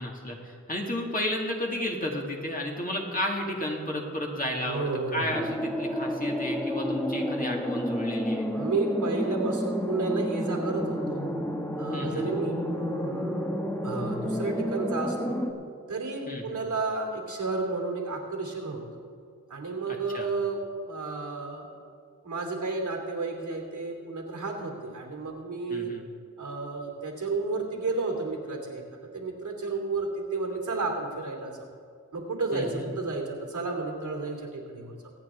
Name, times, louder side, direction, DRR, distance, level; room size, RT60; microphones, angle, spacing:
voice 1, 0.0-8.5 11.9-12.3 16.3-16.6 20.1-20.3 25.7-26.0 32.5-32.9, left 1 dB, 25° left, -1 dB, 2.1 m, -32 dB
voice 2, 4.7-5.5 8.5-11.2 11.8-13.5 13.8-15.4 15.9-18.8 19.5-21.6 22.2-25.9 26.4-28.8 29.1-31.7 32.1-34.9, right 3 dB, 75° right, 1 dB, 2.8 m, -32 dB
sound 1, 5.3-15.5, equal, 5° left, 1.2 m, -30 dB
24.0 x 8.8 x 3.7 m, 2.3 s
wide cardioid pair, 90°, 32 cm